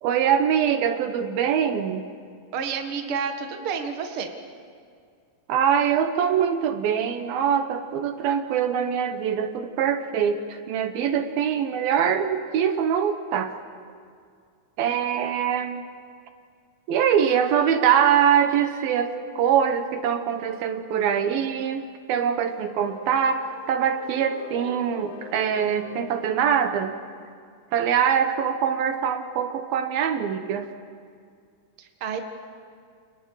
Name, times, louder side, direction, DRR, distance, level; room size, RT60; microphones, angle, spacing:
voice 1, 0.0-2.1 5.5-13.5 14.8-15.8 16.9-21.8 22.1-26.9 27.7-30.7, right 8 dB, 75° right, 8 dB, 2.9 m, -23 dB
voice 2, 2.5-4.3 14.9-15.0 31.8-32.2, right 6 dB, 45° right, 5 dB, 2.1 m, -30 dB
sound 1, 22.5-26.6, left 5 dB, 60° left, 2.7 m, -44 dB
29.5 x 29.5 x 4.9 m, 2.2 s
omnidirectional pair, 4.4 m